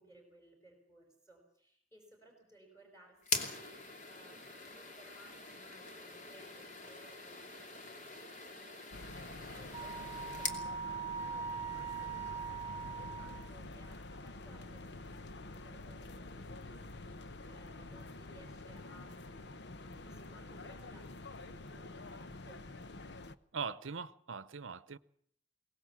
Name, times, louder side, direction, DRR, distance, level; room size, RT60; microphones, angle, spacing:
voice 1, 0.0-22.6, right 1 dB, 15° left, 5.4 m, -61 dB
sound 1, 3.2-10.6, left 3 dB, 40° left, 2.7 m, -43 dB
sound 2, 8.9-23.4, left 2 dB, 60° left, 0.9 m, -48 dB
Wind instrument woodwind instrument, 9.7-13.6, right 6 dB, 15° right, 1.1 m, -41 dB
voice 2, 23.5-25.0, right 5 dB, 85° right, 0.8 m, -41 dB
23.0 x 18.5 x 7.3 m
head